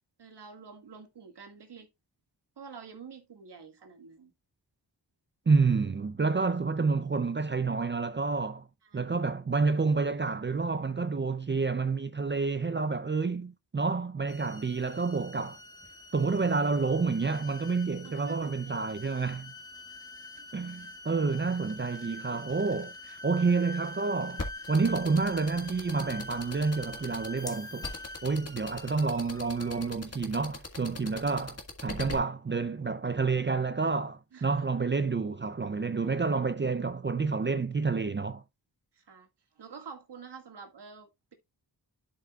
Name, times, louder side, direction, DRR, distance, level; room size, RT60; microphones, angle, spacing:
voice 1, 0.2-1.9 2.6-4.3 8.8-9.2 18.0-18.8 19.1-19.4 20.4-20.5 21.1-21.3 31.3-31.4 34.3-34.7 36.1-36.3 38.9-39.3 39.6-41.3, right 5 dB, 70° right, 2.0 m, -48 dB
voice 2, 5.5-8.7 8.9-15.6 16.1-19.5 20.5-27.9 28.2-38.4, right 4 dB, 25° right, 0.5 m, -29 dB
sound 1, 14.3-29.9, left 2 dB, 10° left, 1.5 m, -46 dB
sound 2, 24.4-32.1, left 3 dB, 35° left, 1.7 m, -39 dB
11.5 x 5.7 x 2.4 m
wide cardioid pair, 115°, 42 cm